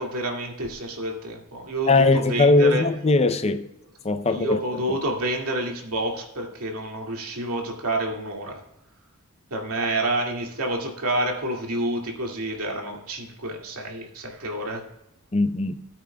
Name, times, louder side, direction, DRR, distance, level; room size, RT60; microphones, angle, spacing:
voice 1, 0.0-2.8 4.3-8.6 9.5-14.8, right 1 dB, 80° right, 2.2 m, -29 dB
voice 2, 1.9-3.7 4.0-5.0 15.3-15.8, left 2 dB, 30° left, 0.5 m, -20 dB
18.5 x 8.7 x 2.3 m
head